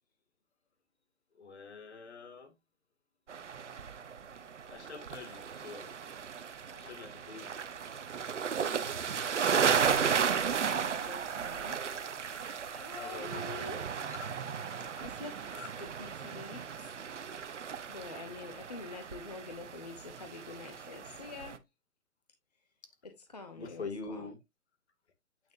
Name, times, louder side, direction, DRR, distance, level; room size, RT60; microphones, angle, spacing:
voice 1, 1.3-2.5 4.7-5.9 6.7-7.5 12.4-12.5 13.0-13.4 14.0-14.8 15.5-15.7 23.6-24.4, left 4 dB, 50° left, 2.3 m, -45 dB
sound 1, 3.3-21.6, right 7 dB, 55° right, 1.0 m, -35 dB
voice 2, 8.6-10.2 10.5-11.8 12.4-13.8 15.0-16.9 17.9-21.6 23.0-24.3, left 3 dB, 30° left, 0.9 m, -47 dB
9.1 x 6.6 x 2.6 m
hypercardioid pair, 180°, 42 cm